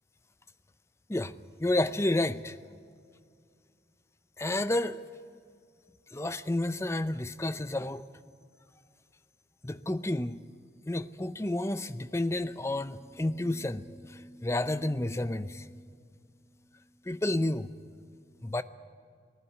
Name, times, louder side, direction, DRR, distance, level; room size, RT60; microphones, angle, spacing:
voice 1, 1.6-2.6 4.4-5.0 6.1-8.0 9.6-10.4 10.9-15.9 17.0-17.7 18.4-18.6, left 1 dB, 15° left, 13 dB, 0.5 m, -30 dB
18.5 x 15.0 x 10.0 m, 2.2 s
head